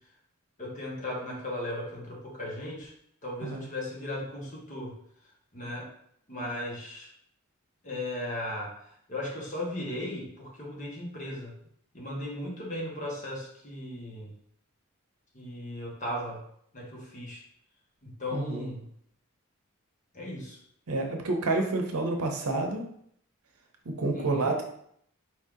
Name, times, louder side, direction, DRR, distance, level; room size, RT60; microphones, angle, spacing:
voice 1, 0.6-2.9 3.2-4.9 5.5-5.9 6.3-7.1 7.8-8.7 9.1-11.5 11.9-14.3 15.3-16.4 16.7-17.4 18.0-18.8 20.1-20.6 24.1-24.5, left 1 dB, 35° left, -3 dB, 1.2 m, -36 dB
voice 2, 18.3-18.7 20.9-22.9 23.8-24.6, right 2 dB, 90° right, 2 dB, 0.8 m, -29 dB
4.6 x 2.8 x 3.6 m, 0.69 s
head